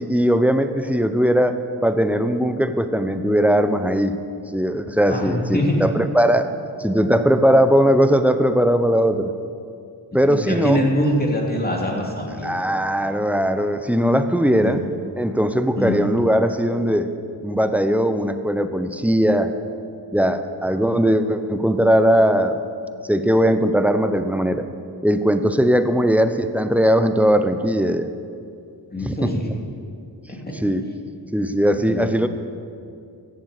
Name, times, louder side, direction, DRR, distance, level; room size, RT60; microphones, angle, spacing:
voice 1, 0.0-4.2 4.5-9.3 10.1-10.8 12.4-14.8 15.2-17.1 17.4-19.6 20.1-22.6 23.1-24.7 25.0-28.1 29.0-29.3 30.5-30.8 31.3-32.3, equal, 5° right, 9 dB, 0.8 m, -19 dB
voice 2, 5.1-5.8 10.3-12.5 14.6-14.7 15.8-16.0 28.9-29.5 30.3-30.5 31.8-32.0, left 1 dB, 20° left, -1 dB, 2.6 m, -23 dB
16.0 x 7.3 x 6.7 m, 2.4 s
cardioid pair, 65°, 42 cm